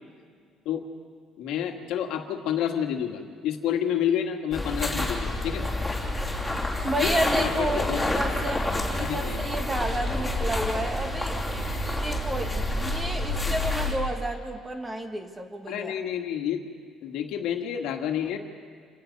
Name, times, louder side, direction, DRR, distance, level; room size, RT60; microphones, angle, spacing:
voice 1, 1.4-5.7 7.0-8.1 8.9-9.4 15.7-16.7 17.0-18.4, left 9 dB, 75° left, 4 dB, 1.9 m, -29 dB
sound 1, 4.5-13.9, left 1 dB, 5° left, 3.1 m, -28 dB
voice 2, 6.8-8.7 8.9-11.4 12.0-15.9, right 1 dB, 15° right, 5 dB, 1.4 m, -31 dB
28.5 x 17.0 x 5.4 m, 2.1 s
cardioid pair, 160°, 0 cm